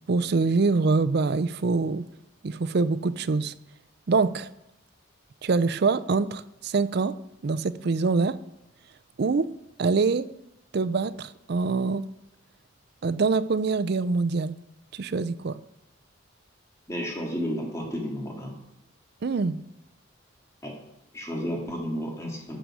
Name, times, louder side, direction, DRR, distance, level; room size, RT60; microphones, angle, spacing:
voice 1, 0.1-2.1 2.4-3.5 4.1-4.5 5.4-7.1 7.4-8.4 9.2-9.5 9.8-10.3 10.7-12.0 13.0-14.6 14.9-15.6 19.2-19.6, right 4 dB, 55° right, 15 dB, 0.4 m, -24 dB
voice 2, 16.9-18.5 20.6-20.8 21.1-22.6, equal, 15° left, 0 dB, 1.9 m, -32 dB
12.0 x 6.8 x 4.9 m, 0.84 s
head